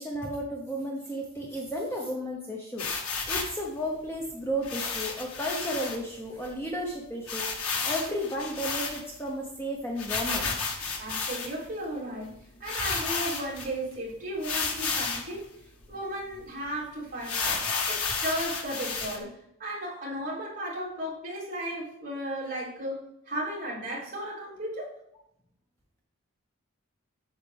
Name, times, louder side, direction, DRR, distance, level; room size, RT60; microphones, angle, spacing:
voice 1, 0.0-2.9 3.3-10.5, equal, 10° left, -1 dB, 1.0 m, -33 dB
sound 1, 2.8-3.6 4.6-6.0 6.4-6.5 6.7-6.8 7.3-9.3 10.0-11.7 12.3-12.4 12.6-13.7 14.4-15.3 15.8-15.9 16.3-16.4 17.2-19.2, left 4 dB, 85° left, 1.6 m, -31 dB
voice 2, 11.0-15.5 15.9-19.3 19.6-24.9, right 1 dB, 35° right, -6 dB, 3.6 m, -35 dB
8.7 x 6.7 x 3.5 m, 0.77 s
head